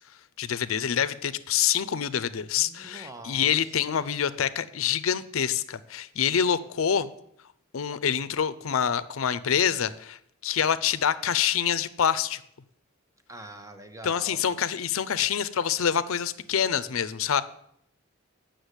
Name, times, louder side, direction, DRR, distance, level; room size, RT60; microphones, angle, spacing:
voice 1, 0.4-7.1 7.7-10.2 10.4-12.4 14.0-17.4, left 8 dB, 75° left, 14 dB, 0.5 m, -26 dB
voice 2, 2.6-3.5 13.3-14.4, right 2 dB, 15° right, 6 dB, 1.0 m, -44 dB
8.1 x 6.3 x 8.1 m, 0.72 s
head